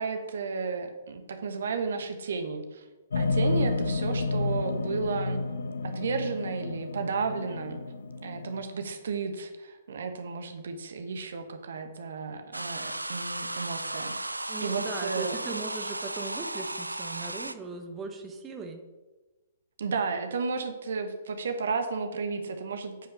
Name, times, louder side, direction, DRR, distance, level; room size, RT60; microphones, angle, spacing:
voice 1, 0.0-2.8 3.1-5.4 5.8-7.8 8.2-14.1 14.6-15.3 19.8-23.1, right 4 dB, 60° right, 6 dB, 1.1 m, -33 dB
sound 1, 3.1-8.6, left 3 dB, 65° left, 0.8 m, -30 dB
sound 2, 12.5-17.5, right 2 dB, 80° right, 0.5 m, -35 dB
voice 2, 14.5-18.8, right 4 dB, 15° right, 4 dB, 1.1 m, -39 dB
9.0 x 5.7 x 6.6 m, 1.2 s
figure-of-eight pair, 120°, 0 cm